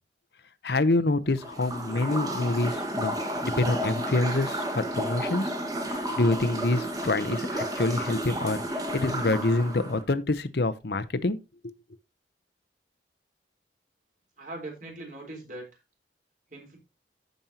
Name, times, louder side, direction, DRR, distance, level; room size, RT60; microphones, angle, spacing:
voice 1, 0.6-3.1 3.4-5.5 5.9-11.4 11.6-11.7, left 2 dB, 65° left, 0.8 m, -26 dB
sound 1, 1.3-10.0, right 1 dB, 20° right, 1.6 m, -32 dB
voice 2, 14.4-15.7 16.5-16.8, right 2 dB, 50° right, 3.9 m, -40 dB
14.5 x 5.3 x 2.9 m
head